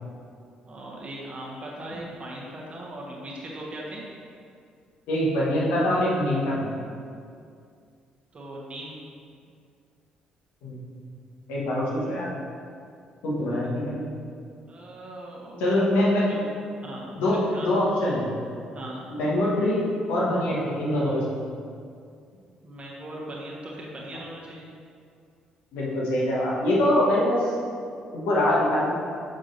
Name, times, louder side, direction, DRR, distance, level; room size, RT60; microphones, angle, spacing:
voice 1, 0.7-4.0 8.3-9.0 13.5-13.6 14.7-15.8 16.3-16.4 16.8-17.7 18.7-19.0 22.6-24.7, right 1 dB, 35° right, -3 dB, 1.4 m, -39 dB
voice 2, 5.1-6.7 10.6-10.8 11.5-12.3 13.2-14.1 15.6-16.3 17.2-18.3 19.2-21.2 25.7-27.5 28.1-28.9, left 1 dB, 60° left, -6 dB, 1.3 m, -24 dB
6.6 x 6.2 x 2.7 m, 2.3 s
figure-of-eight pair, 45°, 4 cm